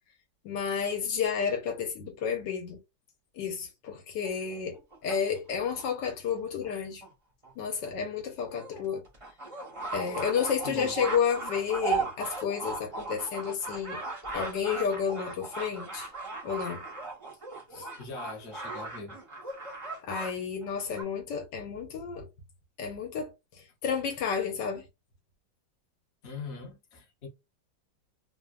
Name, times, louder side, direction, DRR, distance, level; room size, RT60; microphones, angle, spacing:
voice 1, 0.4-2.8 3.4-7.0 7.6-9.0 9.9-14.0 14.3-16.1 16.4-16.8 17.7-17.9 20.0-22.3 22.8-24.9, left 7 dB, 75° left, 1.4 m, -31 dB
sound 1, 4.2-5.8 6.6-6.7 7.0-7.1 7.4-7.5 7.9-8.0 8.5-20.3 20.6-21.0, right 3 dB, 35° right, 0.5 m, -37 dB
voice 2, 10.6-10.9 18.0-19.2 26.2-27.3, left 4 dB, 45° left, 0.9 m, -41 dB
3.3 x 2.0 x 2.3 m
omnidirectional pair, 2.0 m